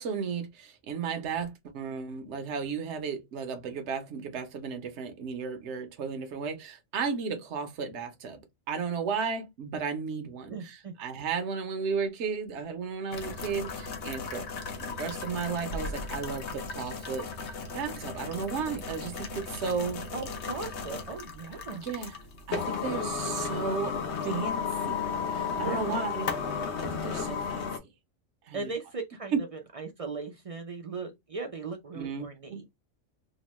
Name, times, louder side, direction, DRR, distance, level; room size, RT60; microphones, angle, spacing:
voice 1, 0.0-8.4 8.7-14.5 14.8-17.3 17.7-20.0 21.8-22.2 22.5-23.9 24.2-26.3 26.8-27.7 28.5-28.7 29.3-29.4 31.9-32.6, right 5 dB, 65° right, 1.0 m, -34 dB
voice 2, 10.5-10.9 20.1-21.9 25.5-26.1 28.5-32.6, right 4 dB, 50° right, 0.4 m, -38 dB
sound 1, 13.1-27.8, left 5 dB, 65° left, 0.9 m, -35 dB
2.9 x 2.1 x 3.0 m
omnidirectional pair, 1.3 m